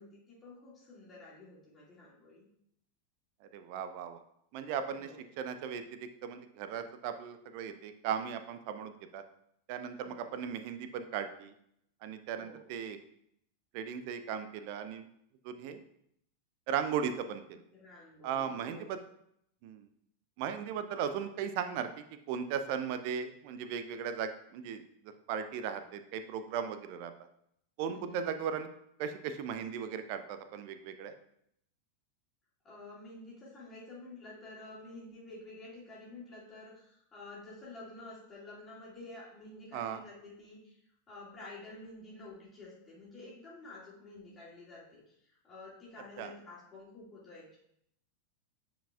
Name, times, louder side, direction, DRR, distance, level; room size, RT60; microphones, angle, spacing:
voice 1, 0.0-2.5 5.0-5.2 10.0-10.4 12.4-12.6 17.7-18.9 27.9-28.3 32.6-40.8 41.1-47.6, left 2 dB, 20° left, -7 dB, 2.4 m, -50 dB
voice 2, 3.4-4.2 4.5-5.1 5.4-9.2 9.7-11.5 12.0-13.0 13.7-15.1 15.4-15.8 16.7-17.6 18.2-19.0 19.6-19.9 20.4-27.1 27.8-28.7 29.0-31.1 39.7-40.0 46.2-46.3, right 7 dB, 45° right, 9 dB, 0.5 m, -37 dB
10.0 x 5.0 x 2.4 m, 0.73 s
figure-of-eight pair, 90°, 0 cm